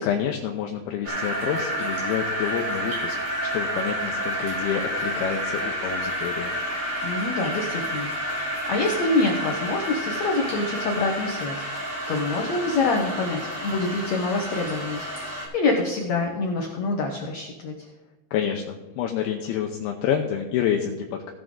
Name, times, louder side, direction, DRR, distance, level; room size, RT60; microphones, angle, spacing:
voice 1, 0.0-3.2 3.5-6.6 18.3-21.3, left 9 dB, 80° left, 3 dB, 2.6 m, -28 dB
sound 1, 1.0-15.5, equal, 45° right, 3.8 m, -30 dB
voice 2, 7.0-17.9, left 3 dB, 65° left, 1 dB, 1.8 m, -26 dB
17.0 x 7.4 x 3.9 m, 1.2 s
omnidirectional pair, 4.6 m